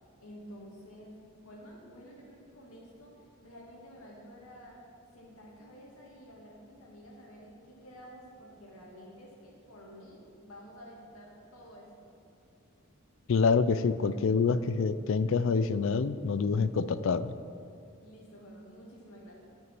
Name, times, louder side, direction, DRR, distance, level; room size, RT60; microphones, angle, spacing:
voice 1, 0.2-4.8 5.1-12.1 18.0-19.6, equal, 85° left, -3 dB, 2.3 m, -51 dB
voice 2, 13.3-17.4, left 5 dB, 65° left, 14 dB, 0.4 m, -26 dB
9.5 x 6.3 x 6.0 m, 2.5 s
head